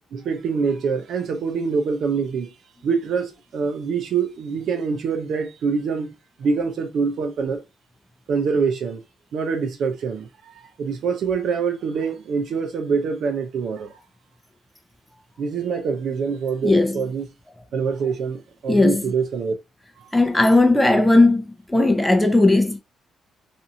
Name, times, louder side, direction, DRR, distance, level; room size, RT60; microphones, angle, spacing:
voice 1, 0.1-2.5 2.8-7.6 8.3-9.0 9.3-14.0 15.4-17.3 17.7-19.5 20.0-20.1, right 5 dB, 65° right, 0.6 m, -25 dB
voice 2, 16.6-17.0 18.7-19.0 20.1-22.8, left 2 dB, 10° left, 0.6 m, -17 dB
2.6 x 2.5 x 2.7 m
cardioid pair, 115°, 0 cm